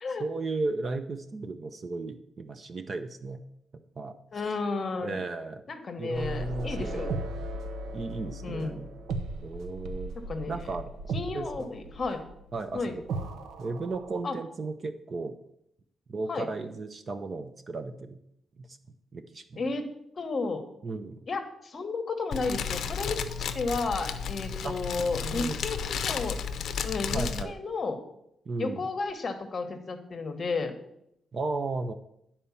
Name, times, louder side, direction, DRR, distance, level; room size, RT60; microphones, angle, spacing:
voice 1, 0.2-3.4 4.0-4.5 5.0-5.6 6.0-7.2 7.9-8.9 9.4-10.1 10.5-10.9 11.3-11.7 12.5-13.0 13.6-15.4 16.1-18.2 18.6-18.8 19.1-19.6 20.8-21.2 24.6-24.8 25.2-25.6 27.1-27.6 28.5-28.8 31.3-31.9, right 3 dB, 30° right, 9 dB, 0.5 m, -35 dB
voice 2, 4.3-5.2 5.7-7.1 8.4-8.8 10.2-10.6 11.1-12.2 12.7-12.9 14.2-14.4 16.3-16.5 19.6-19.9 20.2-20.6 21.3-26.4 26.8-28.0 28.6-30.7, left 3 dB, 30° left, 7 dB, 1.0 m, -32 dB
sound 1, 6.1-14.2, right 2 dB, 80° right, 0.8 m, -37 dB
Fire, 22.3-27.4, left 7 dB, 55° left, 0.6 m, -33 dB
10.0 x 4.3 x 6.9 m, 0.77 s
cardioid pair, 165°, 0 cm